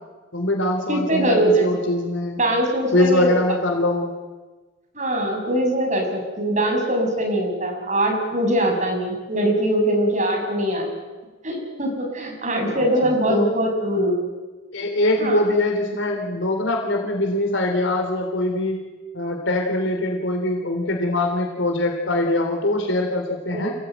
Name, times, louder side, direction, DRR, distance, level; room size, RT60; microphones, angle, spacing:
voice 1, 0.3-2.4 2.9-4.1 12.7-13.5 14.7-18.8 19.1-23.7, left 1 dB, 75° left, 2 dB, 3.3 m, -23 dB
voice 2, 0.9-1.7 2.4-3.3 4.9-10.8 11.4-14.2 15.2-15.4 23.5-23.6, right 1 dB, 40° right, 2 dB, 6.7 m, -22 dB
27.5 x 18.0 x 9.2 m, 1.2 s
head